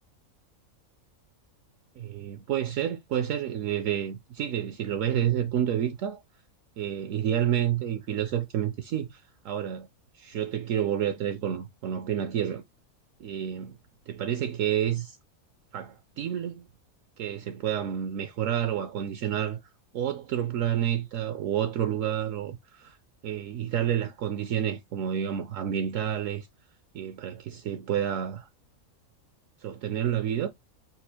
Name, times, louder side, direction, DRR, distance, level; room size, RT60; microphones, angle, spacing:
voice 1, 2.0-6.2 6.8-9.9 10.1-12.6 13.2-13.8 14.1-15.2 15.7-16.7 17.2-19.6 19.9-23.0 23.2-26.5 26.9-28.5 29.6-30.5, right 10 dB, 70° right, 0.9 m, -29 dB
4.2 x 2.4 x 4.2 m
omnidirectional pair, 1.5 m